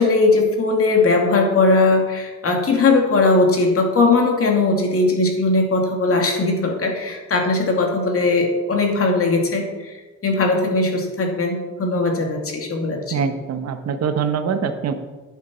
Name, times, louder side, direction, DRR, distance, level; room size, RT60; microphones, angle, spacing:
voice 1, 0.0-10.0 10.2-13.2, left 3 dB, 50° left, 2 dB, 2.5 m, -19 dB
voice 2, 13.1-14.9, right 6 dB, 60° right, 8 dB, 1.1 m, -23 dB
10.5 x 9.6 x 4.4 m, 1.2 s
cardioid pair, 90°, 30 cm